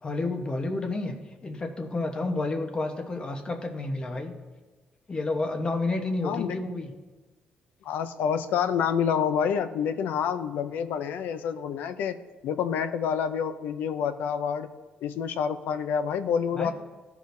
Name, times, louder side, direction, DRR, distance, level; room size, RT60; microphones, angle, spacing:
voice 1, 0.0-4.3 5.1-6.9 16.6-16.7, left 2 dB, 30° left, 5 dB, 1.0 m, -30 dB
voice 2, 6.2-6.6 7.8-12.2 12.4-14.7 15.0-16.7, left 7 dB, 90° left, 11 dB, 0.5 m, -28 dB
14.5 x 5.0 x 2.6 m, 1.3 s
cardioid pair, 105°, 3 cm